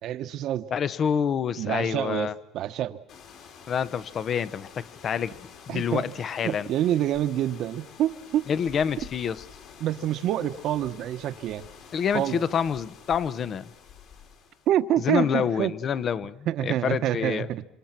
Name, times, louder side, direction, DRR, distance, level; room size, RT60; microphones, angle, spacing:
voice 1, 0.0-0.7 1.6-2.3 2.5-3.0 5.7-6.0 6.4-8.5 9.8-11.7 12.1-12.4 14.7-15.7 16.5-17.6, right 12 dB, 55° right, 11 dB, 1.2 m, -27 dB
voice 2, 0.7-2.3 3.7-5.4 5.7-6.7 8.5-9.4 11.9-13.7 15.0-17.5, left 7 dB, 40° left, 16 dB, 0.9 m, -27 dB
sound 1, 3.1-14.8, left 7 dB, 60° left, 4.7 m, -49 dB
27.5 x 26.0 x 6.0 m, 0.87 s
cardioid pair, 125°, 0 cm